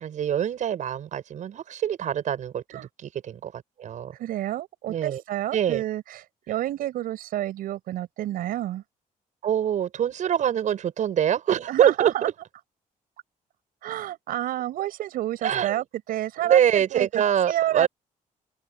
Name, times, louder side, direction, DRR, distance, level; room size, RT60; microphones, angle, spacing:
voice 1, 0.0-2.6 3.0-3.5 3.8-4.1 4.9-5.2 5.5-5.8 9.4-12.3 15.4-15.8 16.4-17.9, right 9 dB, 55° right, 7.9 m, -24 dB
voice 2, 4.2-8.8 11.7-12.3 13.8-17.9, right 13 dB, 85° right, 6.4 m, -29 dB
open air
cardioid pair, 125°, 15 cm